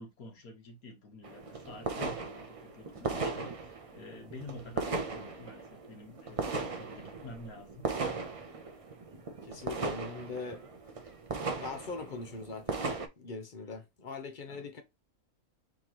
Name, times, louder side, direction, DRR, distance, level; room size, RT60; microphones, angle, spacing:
voice 1, 0.0-7.9 14.5-14.7, left 2 dB, 85° left, 1.7 m, -49 dB
sound 1, 1.2-13.1, right 4 dB, 45° right, 0.4 m, -38 dB
voice 2, 9.5-10.6 11.5-14.8, left 4 dB, 40° left, 0.8 m, -41 dB
4.5 x 3.7 x 2.9 m
omnidirectional pair, 1.5 m